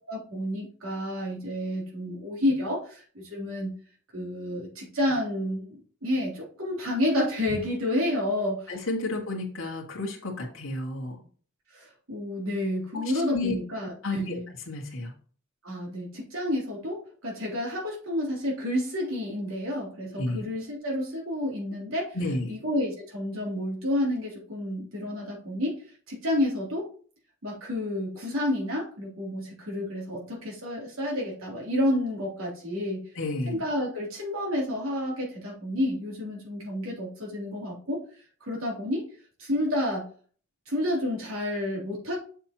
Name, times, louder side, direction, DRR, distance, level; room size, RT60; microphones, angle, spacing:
voice 1, 0.1-3.7 4.1-8.8 11.7-14.5 15.6-22.2 22.5-25.8 26.1-26.9 27.4-33.0 33.5-38.0 38.4-39.0 39.4-40.1 40.7-42.2, left 1 dB, 85° right, -3 dB, 3.4 m, -30 dB
voice 2, 8.7-11.2 12.9-13.0 13.3-13.6 14.0-14.4 14.7-15.1 20.2-20.4 22.1-22.5 33.2-33.6, left 2 dB, 70° left, -1 dB, 1.9 m, -31 dB
7.4 x 6.6 x 3.0 m, 0.43 s
head